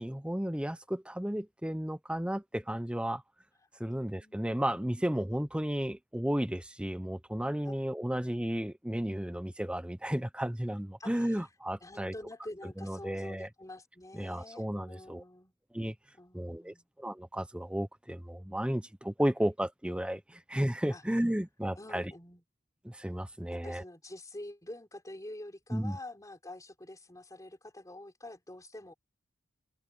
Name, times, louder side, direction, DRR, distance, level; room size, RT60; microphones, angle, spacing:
voice 1, 0.0-3.2 3.8-12.1 12.8-13.5 14.1-15.2 15.7-15.9 16.3-22.1 22.8-23.8 25.7-26.0, equal, 5° right, 0.7 m, -33 dB
voice 2, 3.9-4.5 7.6-7.8 11.0-11.5 11.8-15.5 16.1-16.9 20.9-21.0 21.8-22.4 23.5-28.9, left 1 dB, 15° left, 4.0 m, -47 dB
head